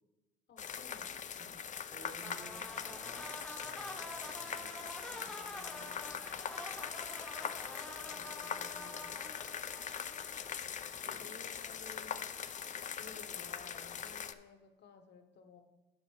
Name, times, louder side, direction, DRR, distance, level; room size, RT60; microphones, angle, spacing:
voice 1, 0.5-1.6 5.1-6.5 8.0-9.3 11.2-12.4 13.0-15.6, left 5 dB, 60° left, 7 dB, 1.1 m, -56 dB
sound 1, 0.6-14.3, left 8 dB, 40° left, 0.4 m, -42 dB
voice 2, 1.7-3.3 3.6-4.1 4.4-4.8 5.1-5.3 7.4-7.9 11.0-11.3, right 3 dB, 45° right, 2 dB, 1.9 m, -56 dB
sound 2, 2.2-10.7, left 1 dB, 5° left, 0.9 m, -48 dB
8.9 x 5.0 x 4.9 m, 1.1 s
cardioid pair, 90°, 20 cm